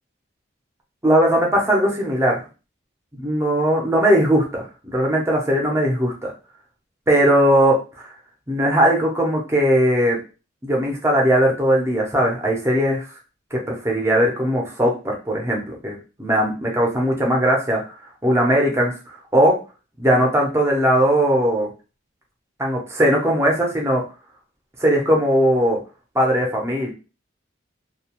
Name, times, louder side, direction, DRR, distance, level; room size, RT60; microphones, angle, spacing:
voice 1, 1.0-2.4 3.1-6.3 7.1-7.8 8.0-8.1 8.5-10.2 10.6-13.0 13.5-17.8 18.2-19.6 20.0-21.7 22.6-24.0 24.8-25.8 26.1-26.9, equal, 15° right, -1 dB, 0.6 m, -19 dB
2.4 x 2.2 x 2.9 m, 0.32 s
head